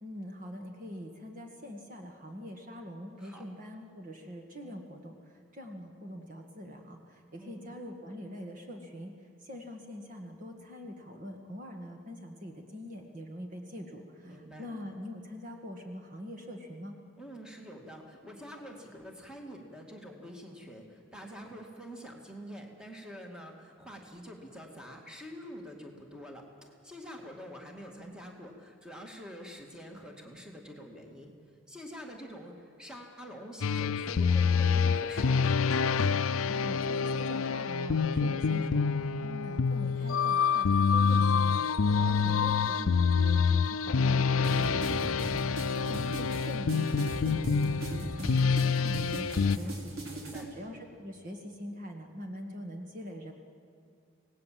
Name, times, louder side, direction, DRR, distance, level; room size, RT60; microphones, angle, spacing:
voice 1, 0.0-9.1 9.4-17.0 36.5-53.3, equal, 40° right, 3 dB, 1.9 m, -44 dB
voice 2, 7.4-7.7 14.2-14.7 17.2-31.3 31.7-35.5 41.9-42.4 50.0-50.5, equal, 5° right, 1 dB, 2.2 m, -46 dB
sound 1, 33.6-49.6, left 5 dB, 85° left, 0.5 m, -27 dB
sound 2, 44.4-50.4, right 1 dB, 90° right, 4.2 m, -39 dB
26.5 x 18.5 x 7.7 m, 2.5 s
head